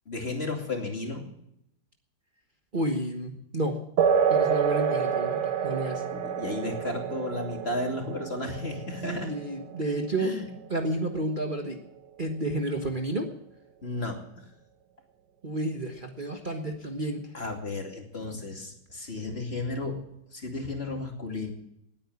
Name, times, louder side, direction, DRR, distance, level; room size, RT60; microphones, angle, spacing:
voice 1, 0.1-1.2 6.1-9.3 10.2-10.4 13.8-14.4 17.3-20.0 20.3-21.5, left 2 dB, 35° left, 2 dB, 2.8 m, -33 dB
voice 2, 2.7-3.8 4.3-6.0 9.0-10.3 10.7-11.8 12.2-13.3 15.4-17.2, right 1 dB, 30° right, 3 dB, 1.5 m, -30 dB
sound 1, 4.0-12.0, right 7 dB, 75° right, 1.9 m, -29 dB
19.5 x 9.1 x 7.1 m, 0.76 s
omnidirectional pair, 1.8 m